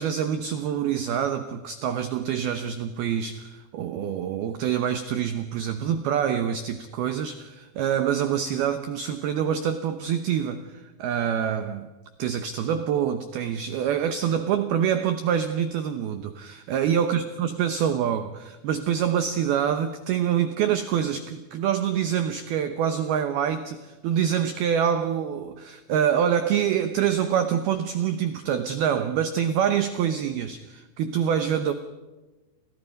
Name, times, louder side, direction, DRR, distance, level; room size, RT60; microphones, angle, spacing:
voice 1, 0.0-10.7 11.0-11.9 12.2-31.7, right 9 dB, 80° right, 2.2 m, -26 dB
29.5 x 26.0 x 5.3 m
omnidirectional pair, 5.9 m